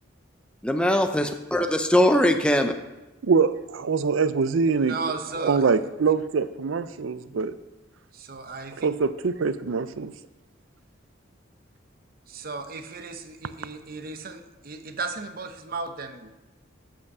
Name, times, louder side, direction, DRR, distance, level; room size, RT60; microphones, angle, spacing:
voice 1, 0.6-2.7, left 1 dB, 5° left, 6 dB, 0.5 m, -21 dB
voice 2, 3.2-5.0 5.3-7.5 8.8-10.1, right 5 dB, 75° right, 14 dB, 0.5 m, -24 dB
voice 3, 4.7-5.6 8.2-8.7 12.3-16.3, right 4 dB, 45° right, 7 dB, 0.8 m, -35 dB
8.1 x 5.6 x 6.7 m, 1.0 s
head